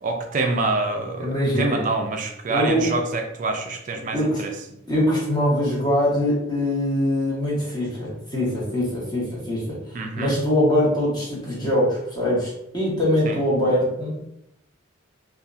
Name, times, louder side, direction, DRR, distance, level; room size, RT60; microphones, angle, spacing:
voice 1, 0.0-4.5 9.9-10.4 13.2-13.4, right 3 dB, 40° right, 3 dB, 0.3 m, -26 dB
voice 2, 1.2-1.8 2.5-2.9 4.1-4.4 4.9-14.1, left 1 dB, 20° left, -7 dB, 1.1 m, -23 dB
2.7 x 2.3 x 2.4 m, 0.80 s
head